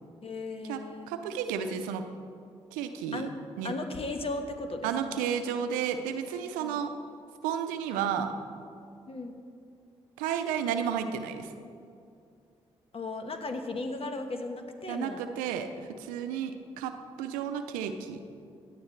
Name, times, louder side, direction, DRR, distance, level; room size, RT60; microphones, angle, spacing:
voice 1, 0.2-1.1 3.1-3.3 3.6-5.3 6.6-6.8 9.1-9.5 12.9-15.2, left 2 dB, 45° left, 6 dB, 1.4 m, -36 dB
voice 2, 1.1-2.0 2.7-3.3 3.6-3.7 4.8-6.9 7.4-8.3 10.2-11.5 14.9-15.7 16.0-16.9 17.2-18.2, right 8 dB, 85° right, 8 dB, 0.6 m, -32 dB
16.5 x 9.7 x 3.2 m, 2.4 s
hypercardioid pair, 40°, 14 cm